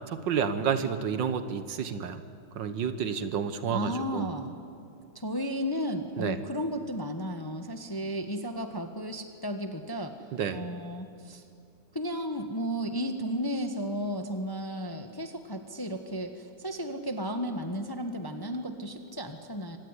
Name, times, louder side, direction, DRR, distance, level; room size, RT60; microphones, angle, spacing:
voice 1, 0.1-2.2 2.6-4.3 6.2-6.4 10.3-10.6, right 7 dB, 65° right, 11 dB, 1.7 m, -30 dB
voice 2, 3.7-4.6 5.1-10.1 10.5-11.4 11.9-19.8, equal, 15° left, 7 dB, 1.0 m, -34 dB
25.0 x 18.0 x 9.7 m, 2.4 s
omnidirectional pair, 2.2 m